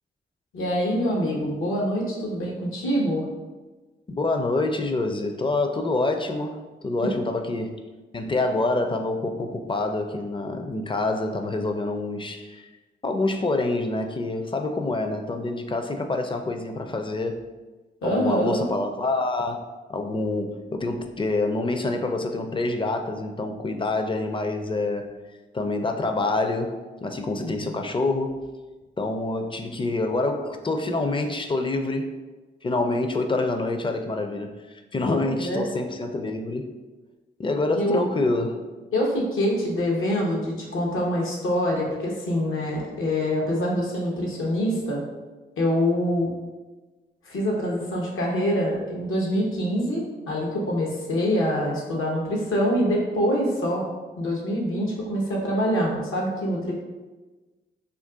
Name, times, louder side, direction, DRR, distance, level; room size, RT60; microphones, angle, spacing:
voice 1, 0.5-3.2 7.0-7.1 18.0-18.6 27.4-27.7 35.1-35.7 37.7-38.0 38.9-45.0 45.6-46.3 47.3-53.8 54.2-56.7, equal, 75° left, -2 dB, 0.8 m, -25 dB
voice 2, 4.1-7.8 8.1-12.7 13.0-17.4 18.0-19.6 19.9-25.1 25.5-28.5 29.0-32.1 32.6-36.7 37.4-38.6, left 2 dB, 25° left, 5 dB, 0.4 m, -26 dB
2.5 x 2.4 x 3.5 m, 1.2 s
supercardioid pair, 40°, 21 cm